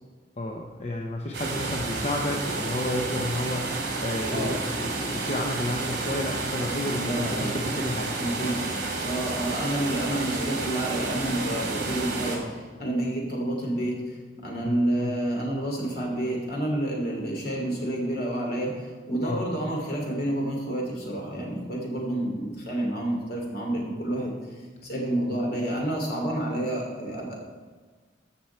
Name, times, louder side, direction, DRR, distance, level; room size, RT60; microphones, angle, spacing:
voice 1, 0.4-8.1 14.6-15.2 19.2-19.4, left 1 dB, 35° left, 1 dB, 0.8 m, -31 dB
sound 1, 1.3-12.4, right 3 dB, 60° right, 2.6 m, -31 dB
voice 2, 4.3-4.6 6.9-7.6 8.2-14.0 14.4-18.7 19.1-24.3 24.8-27.4, right 1 dB, 55° left, -1 dB, 2.8 m, -29 dB
14.5 x 6.1 x 4.5 m, 1.5 s
head